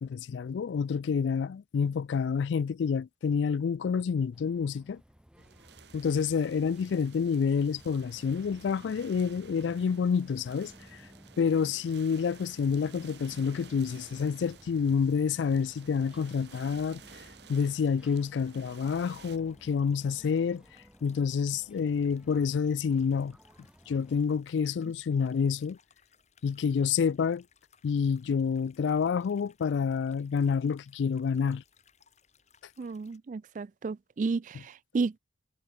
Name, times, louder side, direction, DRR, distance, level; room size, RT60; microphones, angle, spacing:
voice 1, 0.0-5.0 5.9-10.7 11.4-17.0 17.5-20.6 21.0-23.4 23.9-25.8 26.4-27.4 27.8-31.6, left 6 dB, 80° left, 0.3 m, -28 dB
sound 1, 4.3-24.3, equal, 5° right, 1.0 m, -56 dB
sound 2, 5.4-19.4, right 6 dB, 65° right, 1.7 m, -54 dB
sound 3, 17.6-33.2, left 7 dB, 40° left, 3.8 m, -66 dB
voice 2, 32.8-35.2, right 4 dB, 45° right, 0.3 m, -32 dB
head